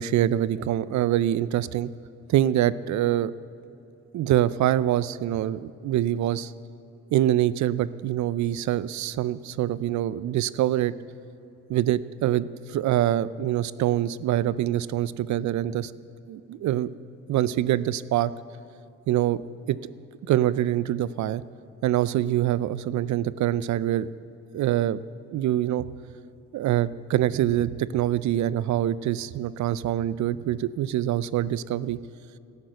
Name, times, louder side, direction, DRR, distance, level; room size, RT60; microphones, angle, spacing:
voice 1, 0.0-1.9 2.3-3.3 4.1-6.5 7.1-10.9 11.7-15.9 16.3-16.9 17.3-18.3 19.1-19.4 19.7-19.8 20.3-21.4 21.8-24.1 24.5-25.0 25.3-25.9 26.5-32.0, right 12 dB, 70° right, 18 dB, 0.5 m, -25 dB
13.0 x 11.0 x 7.8 m, 2.8 s
cardioid pair, 90°, 30 cm